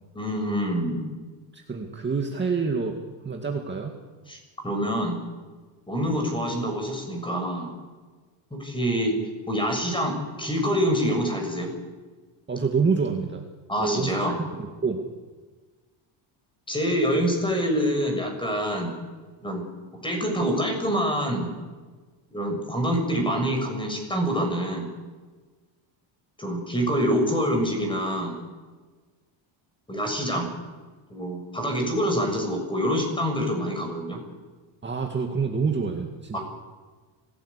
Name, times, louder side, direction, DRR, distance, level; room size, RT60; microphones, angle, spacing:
voice 1, 0.1-1.0 4.3-4.4 4.6-5.2 5.9-7.7 8.5-9.1 9.5-11.7 13.7-14.3 16.7-18.9 19.4-19.6 20.0-21.5 22.3-24.9 26.4-28.4 29.9-30.5 31.1-34.2 36.3-36.4, equal, 10° left, 4 dB, 6.6 m, -26 dB
voice 2, 1.5-3.0 3.2-3.9 12.5-13.4 13.8-15.0 34.8-36.4, right 5 dB, 20° right, 2 dB, 2.2 m, -27 dB
25.0 x 17.5 x 8.4 m, 1.4 s
cardioid pair, 140°, 49 cm